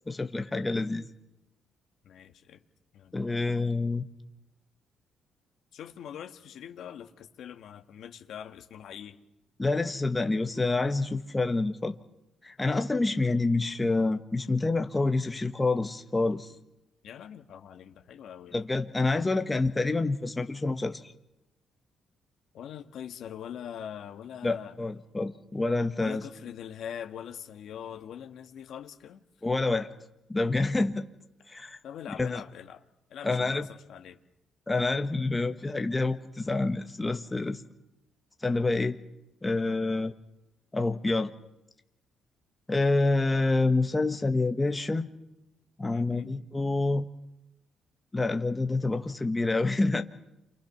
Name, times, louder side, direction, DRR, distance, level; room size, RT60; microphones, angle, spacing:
voice 1, 0.1-1.1 3.1-4.0 9.6-11.9 12.4-16.5 18.5-21.0 24.4-26.2 29.4-29.9 30.3-31.1 31.5-31.8 32.2-32.4 33.2-33.7 34.7-37.6 38.4-39.0 39.4-40.1 40.7-41.3 42.7-45.1 45.8-47.1 48.1-50.0, left 3 dB, 15° left, 1.4 m, -27 dB
voice 2, 2.0-2.6 2.9-3.1 5.7-9.2 17.0-18.6 19.1-19.3 22.5-24.8 26.0-29.2 31.8-32.8 33.1-34.2 45.9-46.4, left 9 dB, 75° left, 1.6 m, -43 dB
28.5 x 23.5 x 5.9 m
cardioid pair, 90°, 0 cm